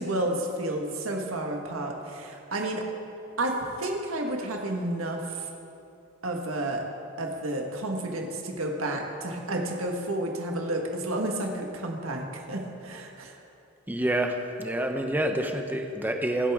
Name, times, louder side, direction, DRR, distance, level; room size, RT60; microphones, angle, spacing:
voice 1, 0.0-2.8 3.4-5.5 6.2-6.9 7.2-13.4, right 1 dB, 75° right, 1 dB, 1.5 m, -31 dB
voice 2, 13.9-16.5, right 1 dB, 10° right, 4 dB, 0.8 m, -27 dB
24.5 x 8.2 x 3.6 m, 2.8 s
head